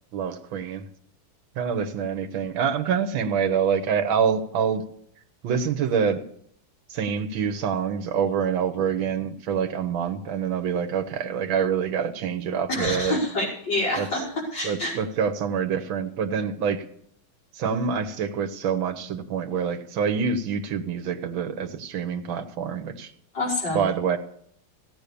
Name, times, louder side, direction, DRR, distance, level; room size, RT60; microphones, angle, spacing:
voice 1, 0.1-0.9 1.6-4.8 5.4-6.3 6.9-13.2 14.0-14.1 14.6-16.8 17.5-23.1 23.7-24.2, right 7 dB, 85° right, 6 dB, 1.9 m, -26 dB
voice 2, 12.7-14.2 14.5-14.9 23.3-23.9, left 1 dB, 65° left, -4 dB, 5.8 m, -26 dB
15.5 x 8.8 x 6.8 m, 0.65 s
omnidirectional pair, 2.1 m